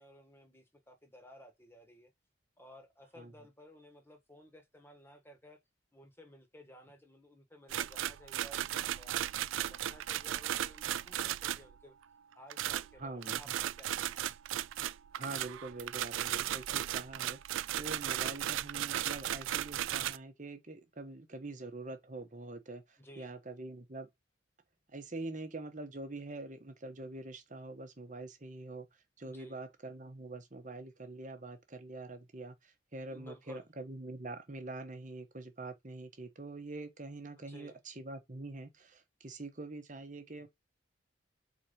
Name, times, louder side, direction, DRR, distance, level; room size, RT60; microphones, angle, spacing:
voice 1, 0.0-2.1 2.6-5.6 5.9-9.3 9.7-12.0 12.3-14.2 23.0-23.3 29.2-29.6 33.1-33.7 37.5-37.7 40.4-40.5, equal, 10° left, 1.3 m, -56 dB
sound 1, 7.7-11.7 12.5-20.2, right 12 dB, 90° right, 0.3 m, -36 dB
voice 2, 13.0-13.4 15.1-17.4 17.8-24.1 24.9-28.9 29.2-40.5, right 2 dB, 40° right, 1.2 m, -45 dB
4.4 x 4.1 x 5.2 m
head